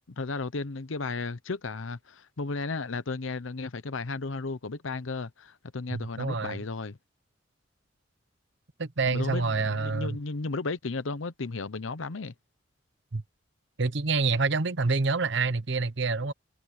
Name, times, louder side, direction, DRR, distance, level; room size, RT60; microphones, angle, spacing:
voice 1, 0.0-7.0 9.0-12.3, left 3 dB, 80° left, 0.8 m, -34 dB
voice 2, 5.9-6.6 8.8-10.2 13.1-13.2 13.8-16.3, right 4 dB, 65° right, 1.0 m, -27 dB
head